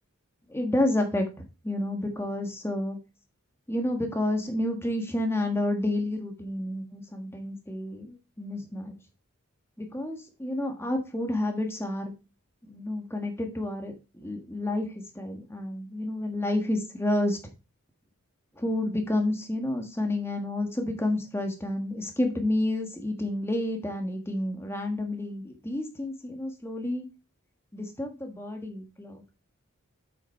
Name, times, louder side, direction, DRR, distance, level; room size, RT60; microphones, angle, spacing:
voice 1, 0.5-1.2 1.6-3.0 3.7-8.9 9.8-12.1 12.6-14.9 15.1-17.4 18.6-27.0 27.7-29.2, left 1 dB, 10° left, 4 dB, 1.5 m, -30 dB
7.6 x 5.9 x 4.3 m, 0.30 s
head